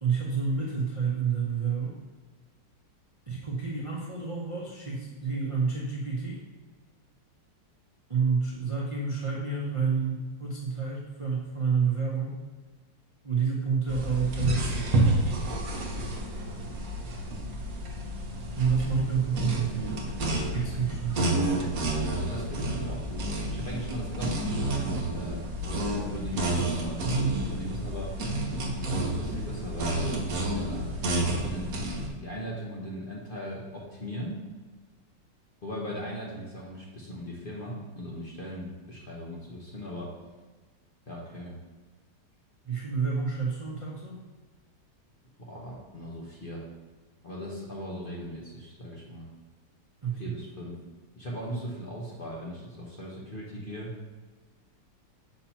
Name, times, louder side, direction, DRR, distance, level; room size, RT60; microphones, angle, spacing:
voice 1, 0.0-2.0 3.3-6.4 8.1-12.4 13.2-15.2 18.6-21.2 42.6-44.2 50.0-50.3, right 5 dB, 35° right, -5 dB, 0.5 m, -29 dB
sound 1, 13.9-32.1, right 1 dB, 55° right, 1.2 m, -30 dB
voice 2, 22.3-28.1 28.9-30.2 30.5-31.8 32.2-34.5 35.6-40.1 41.1-41.6 45.4-46.7 47.2-49.3 50.2-50.8 51.2-53.9, equal, 40° left, -4 dB, 0.9 m, -39 dB
6.8 x 2.9 x 5.6 m, 1.3 s
omnidirectional pair, 2.0 m